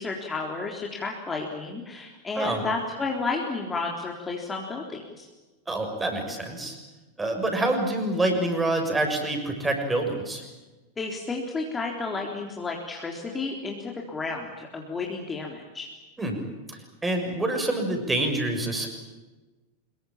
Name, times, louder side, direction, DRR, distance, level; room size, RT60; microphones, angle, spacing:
voice 1, 0.0-5.3 11.0-15.9, left 3 dB, 15° left, 0 dB, 3.7 m, -32 dB
voice 2, 5.7-6.7 7.2-10.4 16.2-16.4 16.7-18.9, right 2 dB, 10° right, 3 dB, 6.6 m, -27 dB
25.5 x 22.5 x 8.9 m, 1.2 s
figure-of-eight pair, 90°, 0 cm